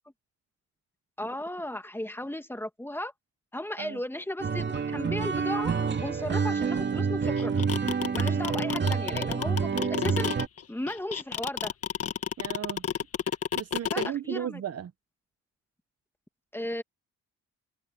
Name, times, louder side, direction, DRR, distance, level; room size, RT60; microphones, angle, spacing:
voice 1, 1.2-3.1 3.5-5.7 6.0-7.6 8.1-10.3 10.7-11.7 13.9-14.6 16.5-16.8, left 1 dB, 5° left, 2.0 m, -35 dB
sound 1, 4.4-10.5, right 5 dB, 35° right, 2.4 m, -28 dB
sound 2, 7.4-14.1, left 8 dB, 50° left, 1.7 m, -30 dB
voice 2, 12.4-12.8 13.5-14.9, right 10 dB, 55° right, 1.3 m, -35 dB
cardioid pair, 90°, 30 cm